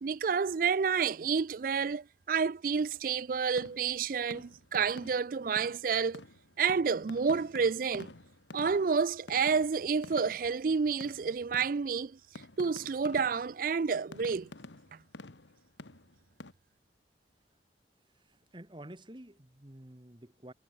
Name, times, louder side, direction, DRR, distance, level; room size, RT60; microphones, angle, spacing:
voice 1, 0.0-6.2 6.6-8.1 8.5-12.2 12.6-14.5, right 5 dB, 50° right, 0.4 m, -29 dB
sound 1, 3.6-4.0 4.3-10.6 11.0-12.1 12.4-13.7 14.1-16.5, left 2 dB, 85° left, 1.5 m, -50 dB
voice 2, 18.0-20.5, right 1 dB, 25° right, 1.7 m, -50 dB
head